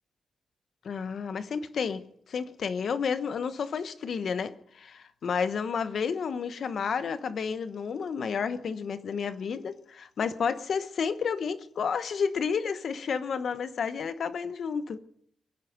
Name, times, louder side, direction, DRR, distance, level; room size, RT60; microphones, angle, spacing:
voice 1, 0.8-15.0, left 6 dB, 60° left, 1.0 m, -31 dB
23.5 x 10.5 x 5.2 m
wide cardioid pair, 130°, 0 cm